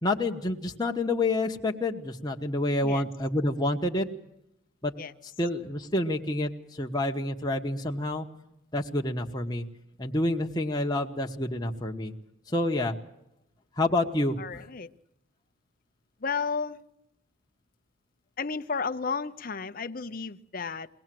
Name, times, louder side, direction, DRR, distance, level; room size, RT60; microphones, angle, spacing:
voice 1, 0.0-4.1 4.8-4.9 5.4-8.3 8.7-9.6 10.0-12.1 12.5-13.0 13.8-14.6, left 1 dB, 20° left, 2 dB, 1.2 m, -28 dB
voice 2, 14.4-14.9 16.2-16.8 18.4-20.9, left 5 dB, 40° left, 10 dB, 0.7 m, -33 dB
22.5 x 18.0 x 7.7 m, 0.84 s
head